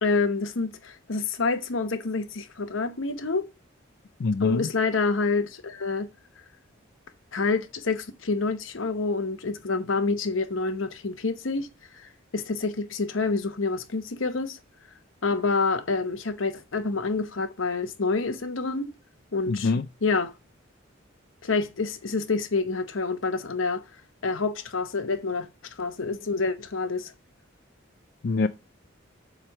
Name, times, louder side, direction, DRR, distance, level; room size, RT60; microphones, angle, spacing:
voice 1, 0.0-3.4 4.4-6.1 7.3-11.7 11.9-14.6 15.2-18.9 19.3-19.7 20.0-20.3 21.4-23.8 24.2-25.5 25.8-27.1, left 4 dB, 90° left, 0.9 m, -27 dB
voice 2, 4.2-4.7 19.5-19.9 28.2-28.5, left 3 dB, 55° left, 0.4 m, -24 dB
7.5 x 3.3 x 5.7 m
head